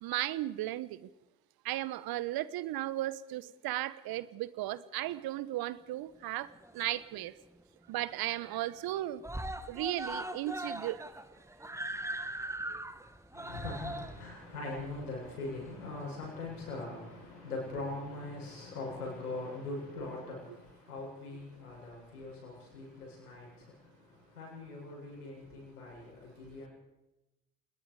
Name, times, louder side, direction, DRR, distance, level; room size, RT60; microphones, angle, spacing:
voice 1, 0.0-1.1 1.6-7.3 7.9-9.2 9.7-11.0, right 15 dB, 55° right, 17 dB, 1.3 m, -35 dB
Screaming, 6.3-7.3 7.6-7.7 8.0-8.1 8.4-8.9 9.2-16.0 16.9-17.0, right 1 dB, 5° right, 1.6 m, -41 dB
voice 2, 13.3-26.7, left 2 dB, 85° left, -3 dB, 7.8 m, -42 dB
27.5 x 20.5 x 5.0 m, 0.96 s
figure-of-eight pair, 55°, 44 cm